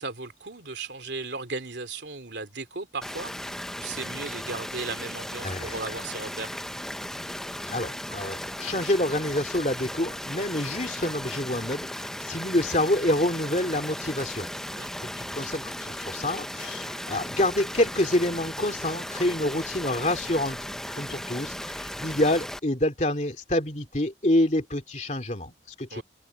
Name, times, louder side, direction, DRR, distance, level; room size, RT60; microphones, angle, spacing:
voice 1, 0.0-6.5 14.7-14.9 25.9-26.0, right 3 dB, 90° right, 2.9 m, -36 dB
sound 1, 3.0-22.6, left 1 dB, 5° left, 0.7 m, -36 dB
voice 2, 5.4-5.8 7.7-14.5 15.0-20.6 20.9-26.0, left 1 dB, 40° left, 2.9 m, -27 dB
head